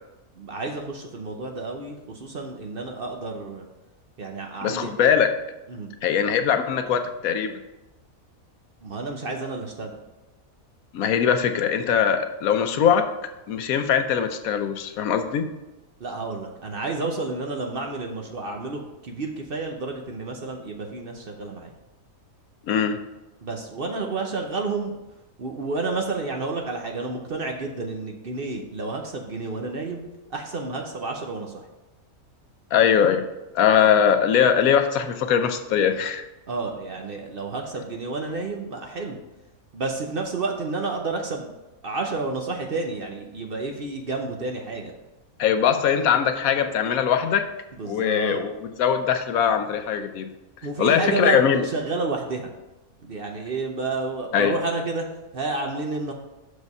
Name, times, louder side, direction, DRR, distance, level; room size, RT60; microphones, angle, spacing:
voice 1, 0.4-3.6 4.2-4.9 5.7-5.9 8.8-10.0 16.0-21.7 23.4-24.9 25.4-30.0 30.3-31.7 36.5-39.2 39.7-41.5 41.8-44.9 47.8-48.4 50.6-52.5 53.0-55.1 55.3-56.1, right 3 dB, 45° right, 2 dB, 0.9 m, -30 dB
voice 2, 4.6-5.3 6.0-7.6 10.9-13.1 13.5-15.5 22.7-23.0 32.7-33.2 33.5-36.2 45.4-47.5 47.9-50.3 50.8-51.7 54.3-54.6, left 8 dB, 80° left, 8 dB, 1.1 m, -21 dB
6.3 x 5.0 x 5.4 m, 1.0 s
omnidirectional pair, 1.5 m